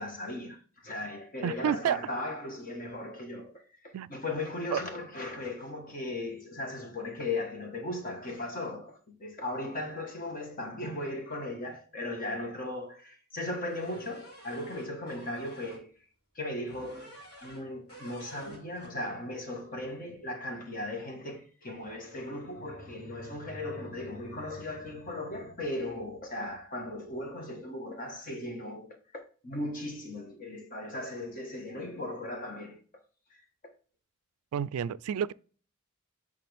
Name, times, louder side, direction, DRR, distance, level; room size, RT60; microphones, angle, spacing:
voice 1, 0.0-15.9 16.3-32.8 33.3-33.4, left 1 dB, 40° left, 1.4 m, -37 dB
voice 2, 1.4-2.0 3.9-4.1 4.7-4.8 34.5-35.3, right 8 dB, 85° right, 0.3 m, -29 dB
sound 1, 13.6-15.8 16.7-17.6 17.9-18.9, right 1 dB, 70° left, 2.7 m, -49 dB
8.4 x 3.8 x 3.4 m
head